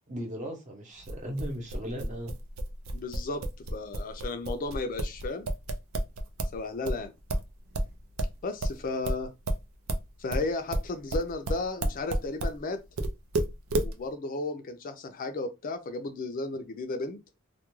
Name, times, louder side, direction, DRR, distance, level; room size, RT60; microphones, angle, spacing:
voice 1, 0.0-2.3, equal, 35° right, 0.8 m, -37 dB
sound 1, 1.0-6.6 6.8-12.6 13.0-13.9, right 1 dB, 90° right, 0.4 m, -30 dB
voice 2, 2.9-3.4 3.7-5.5 6.5-7.1 8.4-9.3 10.2-12.8 13.8-17.2, left 3 dB, 45° left, 0.4 m, -34 dB
2.3 x 2.2 x 3.0 m
head